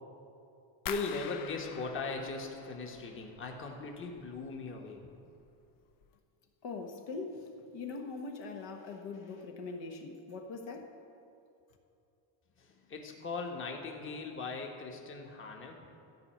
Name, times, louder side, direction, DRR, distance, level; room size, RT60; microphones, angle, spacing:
sound 1, 0.9-3.7 4.0-4.7 5.1-5.5 5.9-6.1, left 9 dB, 50° left, 0.6 m, -45 dB
voice 1, 0.9-5.0 12.6-15.8, left 4 dB, 25° left, 1 dB, 1.2 m, -39 dB
voice 2, 6.6-10.9, left 3 dB, 70° left, 3 dB, 1.4 m, -42 dB
13.5 x 5.4 x 8.5 m, 2.7 s
cardioid pair, 155°, 45 cm